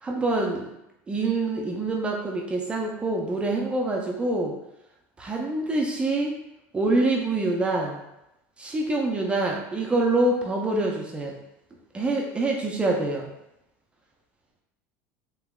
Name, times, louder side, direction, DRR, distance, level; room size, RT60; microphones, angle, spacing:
voice 1, 0.0-0.7 1.1-4.6 5.2-6.3 6.7-8.0 8.6-11.4 11.9-13.3, right 2 dB, 15° right, 0 dB, 0.4 m, -25 dB
3.3 x 2.9 x 2.3 m, 0.87 s
supercardioid pair, 140°, 7 cm